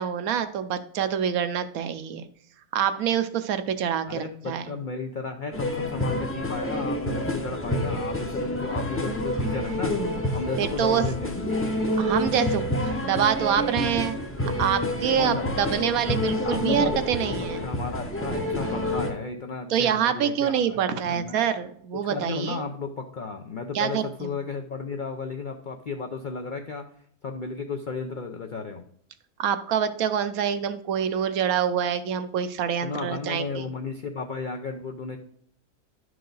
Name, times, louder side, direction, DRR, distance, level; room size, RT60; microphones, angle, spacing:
voice 1, 0.0-2.2 2.7-4.6 10.6-11.0 12.0-17.6 19.7-22.6 23.7-24.4 29.4-33.6, right 8 dB, 70° right, 10 dB, 1.0 m, -26 dB
voice 2, 4.1-11.3 15.2-15.8 16.4-21.4 22.1-26.9 27.2-28.8 32.8-35.2, left 4 dB, 80° left, 5 dB, 0.4 m, -34 dB
sound 1, 5.5-19.1, left 1 dB, 15° left, 0.5 m, -28 dB
11.0 x 4.7 x 3.9 m, 0.65 s
omnidirectional pair, 1.7 m